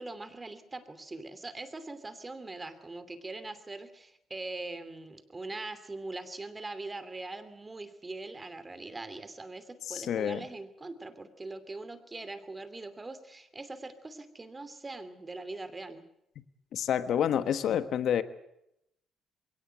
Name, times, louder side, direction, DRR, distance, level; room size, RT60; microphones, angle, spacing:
voice 1, 0.0-16.0, right 2 dB, 25° right, 12 dB, 2.9 m, -42 dB
voice 2, 9.9-10.4 16.7-18.2, left 9 dB, 70° left, 11 dB, 1.3 m, -28 dB
22.0 x 18.0 x 8.0 m, 0.80 s
cardioid pair, 90°, 0 cm